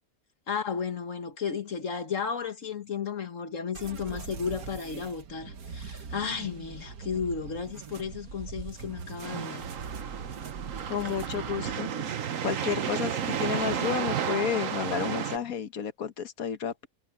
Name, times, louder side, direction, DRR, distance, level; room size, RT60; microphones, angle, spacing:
voice 1, 0.5-9.6, left 6 dB, 65° left, 1.7 m, -33 dB
sound 1, 3.7-11.8, right 5 dB, 90° right, 1.8 m, -41 dB
sound 2, 9.2-15.4, right 8 dB, 65° right, 1.4 m, -32 dB
voice 2, 10.9-11.9 12.4-16.9, left 8 dB, 85° left, 1.6 m, -31 dB
omnidirectional pair, 1.5 m